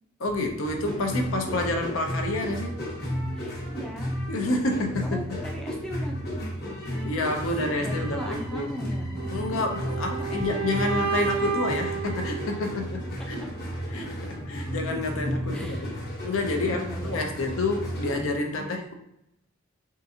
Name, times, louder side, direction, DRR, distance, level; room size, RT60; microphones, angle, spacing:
voice 1, 0.2-2.8 4.3-5.4 7.0-8.7 9.3-13.4 13.9-15.9 16.2-18.9, left 2 dB, 75° left, 4 dB, 0.5 m, -29 dB
sound 1, 0.6-18.3, equal, 50° left, 1.1 m, -33 dB
voice 2, 3.3-4.2 4.7-9.7 10.1-11.1 15.5-16.1 16.5-17.3 18.6-18.8, left 1 dB, 5° left, -1 dB, 0.4 m, -39 dB
sound 2, 9.1-13.2, right 7 dB, 65° right, 0.4 m, -31 dB
3.6 x 2.5 x 2.7 m, 0.82 s
head